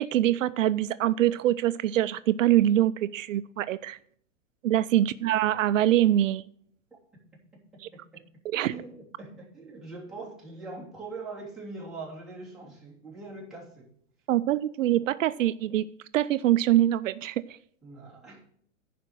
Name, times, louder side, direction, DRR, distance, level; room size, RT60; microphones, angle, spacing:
voice 1, 0.0-4.0 4.6-6.5 8.5-8.7 14.3-15.9 16.1-17.4, right 13 dB, 75° right, 14 dB, 0.5 m, -24 dB
voice 2, 7.9-8.2 8.6-13.9 17.8-18.4, right 3 dB, ahead, -7 dB, 3.0 m, -42 dB
11.0 x 5.1 x 7.5 m, 0.63 s
hypercardioid pair, 155°, 38 cm